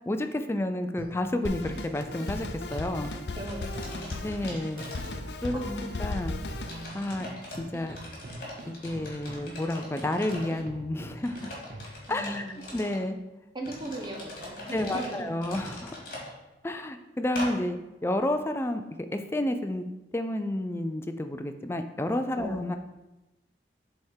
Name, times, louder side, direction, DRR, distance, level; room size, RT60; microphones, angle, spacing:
voice 1, 0.1-3.1 4.2-4.8 5.4-5.7 6.0-6.4 6.9-7.3 7.6-8.0 8.7-11.5 12.1-12.4 12.7-13.2 14.7-16.0 16.6-19.9 20.1-22.7, left 1 dB, 15° left, 7 dB, 0.4 m, -30 dB
sound 1, 1.0-12.0, right 2 dB, 55° right, 0.6 m, -45 dB
Drum kit, 1.4-6.8, left 2 dB, 75° left, 0.6 m, -36 dB
sound 2, 2.7-2.9 3.3-5.5 5.9-6.0 6.6-7.6 7.9-10.6 11.2-13.0 13.6-16.3 17.3-17.5, left 1 dB, 55° left, 2.2 m, -42 dB
voice 2, 3.4-4.1 5.5-5.8 12.1-12.6 13.5-15.3 22.4-22.6, right 1 dB, 25° right, 1 dB, 1.0 m, -38 dB
7.7 x 3.6 x 4.4 m, 1.0 s
head